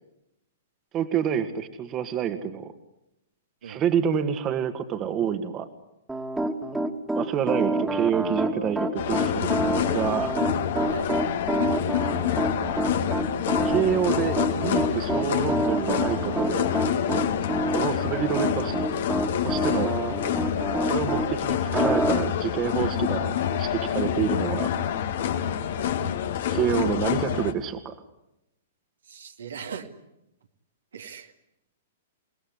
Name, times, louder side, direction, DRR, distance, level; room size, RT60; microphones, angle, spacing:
voice 1, 0.9-2.7 3.6-5.7 7.2-9.5 9.9-10.3 13.6-16.7 17.7-18.8 19.4-19.9 20.8-24.7 26.5-28.0, right 8 dB, 25° right, 9 dB, 2.0 m, -27 dB
Piano, 6.1-21.3 21.7-22.1, right 1 dB, 5° right, 2.3 m, -27 dB
sound 1, 9.0-27.5, left 9 dB, 55° left, 2.0 m, -27 dB
voice 2, 29.0-29.9 30.9-31.3, right 7 dB, 65° right, 5 dB, 2.3 m, -39 dB
29.0 x 19.5 x 9.9 m, 0.89 s
figure-of-eight pair, 105°, 0 cm